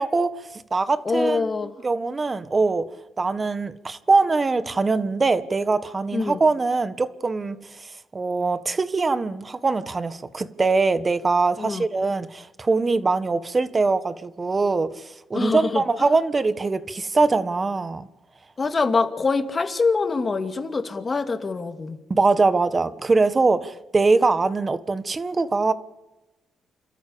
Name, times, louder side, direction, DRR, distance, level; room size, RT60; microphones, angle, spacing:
voice 1, 0.0-1.5 1.8-2.8 3.2-18.1 22.1-25.7, right 3 dB, 30° right, 1.5 m, -22 dB
voice 2, 1.0-1.7 6.1-6.4 11.6-11.8 15.3-15.8 18.6-22.0, left 4 dB, 30° left, 2.5 m, -24 dB
29.0 x 13.5 x 8.7 m
cardioid pair, 95°, 0 cm